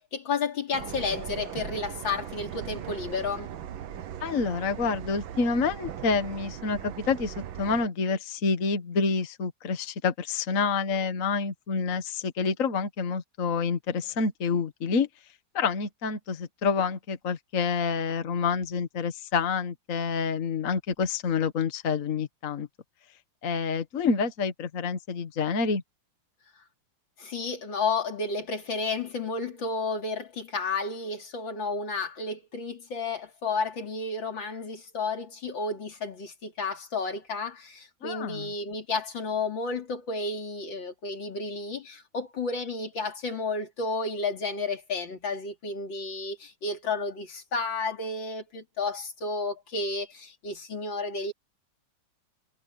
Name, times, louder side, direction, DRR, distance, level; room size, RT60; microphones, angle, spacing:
voice 1, 0.0-3.5 27.2-51.3, left 3 dB, 75° left, 3.6 m, -32 dB
sound 1, 0.7-7.9, right 10 dB, 85° right, 1.8 m, -39 dB
voice 2, 4.2-15.1 15.5-22.7 23.4-25.8 38.0-38.5, left 5 dB, 45° left, 1.7 m, -28 dB
omnidirectional pair, 2.1 m